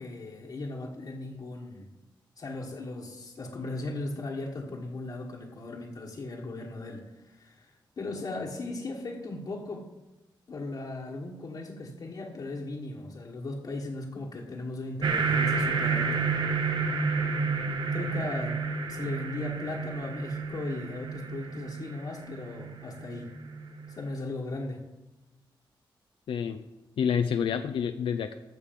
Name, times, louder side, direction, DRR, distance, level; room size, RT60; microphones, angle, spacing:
voice 1, 0.0-1.9 2.4-9.9 10.5-16.3 17.9-23.3 23.9-24.8, left 2 dB, 50° left, -3 dB, 1.5 m, -37 dB
sound 1, 15.0-24.0, right 4 dB, 60° right, 1.1 m, -30 dB
voice 2, 26.3-26.6 27.0-28.4, left 7 dB, 90° left, 8 dB, 0.5 m, -28 dB
14.5 x 6.6 x 5.3 m, 1.0 s
wide cardioid pair, 135°, 9 cm